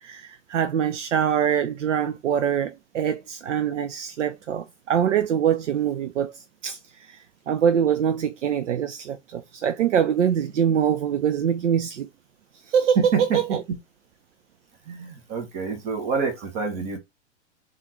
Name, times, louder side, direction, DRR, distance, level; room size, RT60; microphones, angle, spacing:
voice 1, 0.0-7.2 7.5-12.1 12.7-13.6, right 8 dB, 80° right, 0.5 m, -24 dB
voice 2, 13.0-13.6 14.9-17.0, right 5 dB, 35° right, 1.0 m, -27 dB
3.6 x 2.4 x 2.9 m
hypercardioid pair, 115°, 36 cm